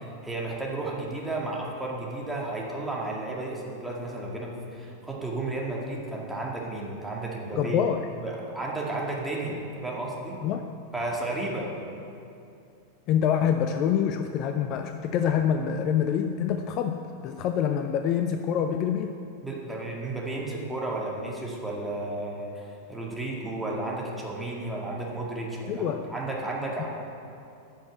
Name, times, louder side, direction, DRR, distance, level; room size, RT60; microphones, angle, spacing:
voice 1, 0.2-7.8 8.2-10.4 10.9-11.7 19.4-26.9, right 2 dB, 5° right, -4 dB, 2.1 m, -33 dB
voice 2, 7.5-8.1 10.4-10.7 13.1-19.1 25.7-26.1, left 8 dB, 40° left, 7 dB, 0.5 m, -26 dB
10.5 x 6.4 x 7.8 m, 2.6 s
figure-of-eight pair, 90°, 0 cm